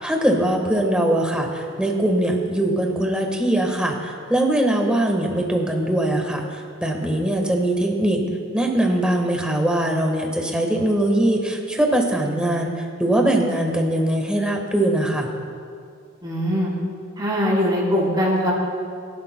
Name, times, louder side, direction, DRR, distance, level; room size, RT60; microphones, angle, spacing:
voice 1, 0.0-8.2 8.5-15.3, right 1 dB, 5° right, 1 dB, 1.3 m, -21 dB
voice 2, 16.2-16.7 17.2-18.5, equal, 20° right, -7 dB, 3.4 m, -21 dB
22.5 x 12.0 x 2.2 m, 2.3 s
head